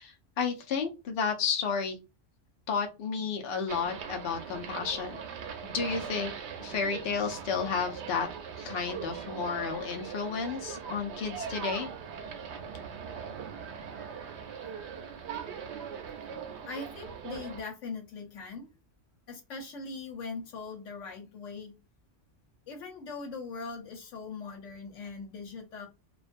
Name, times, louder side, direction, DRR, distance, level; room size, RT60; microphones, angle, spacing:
voice 1, 0.0-2.0 2.7-5.2 5.6-6.3 6.6-8.3 8.6-11.9, left 5 dB, 60° left, 0.8 m, -32 dB
sound 1, 3.7-17.6, right 7 dB, 70° right, 0.8 m, -40 dB
voice 2, 16.6-18.7 19.3-21.8 22.7-25.9, left 4 dB, 90° left, 1.1 m, -41 dB
2.5 x 2.2 x 2.5 m
omnidirectional pair, 1.2 m